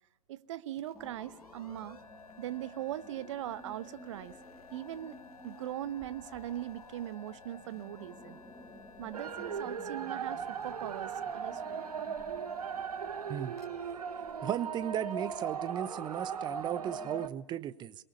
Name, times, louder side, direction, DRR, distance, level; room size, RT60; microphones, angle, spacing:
voice 1, 0.3-2.0 2.4-4.4 4.7-5.2 5.4-8.4 9.0-11.9 17.5-17.6, right 13 dB, 50° right, 1.0 m, -40 dB
sound 1, 0.7-15.3, left 3 dB, 75° left, 2.2 m, -57 dB
sound 2, 0.9-17.3, left 2 dB, 5° left, 2.3 m, -53 dB
sound 3, 9.1-17.3, right 7 dB, 75° right, 1.2 m, -38 dB
voice 2, 14.4-18.0, right 10 dB, 25° right, 1.0 m, -36 dB
23.0 x 22.0 x 7.1 m
figure-of-eight pair, 110°, 19 cm